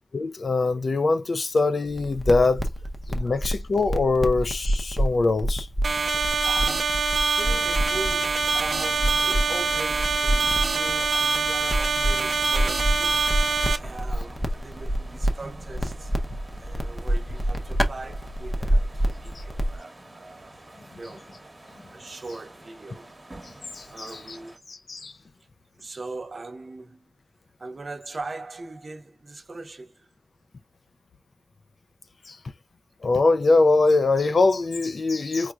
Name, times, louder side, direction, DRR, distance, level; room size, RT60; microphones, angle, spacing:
voice 1, 0.1-2.6 3.1-5.7 19.4-19.5 23.7-24.4 24.7-25.1 32.3-32.4 33.0-35.5, left 3 dB, 65° left, 0.4 m, -22 dB
sound 1, 1.9-19.8, equal, 20° left, 0.6 m, -28 dB
sound 2, 5.8-13.8, right 4 dB, 85° right, 0.5 m, -24 dB
voice 2, 6.1-13.1 13.8-16.1 16.6-21.3 21.9-23.1 23.9-24.6 25.8-27.1 27.6-30.1, right 3 dB, 55° right, 0.7 m, -40 dB
sound 3, 7.4-24.6, right 1 dB, 30° right, 1.0 m, -46 dB
4.5 x 2.1 x 2.2 m
wide cardioid pair, 100°, 0 cm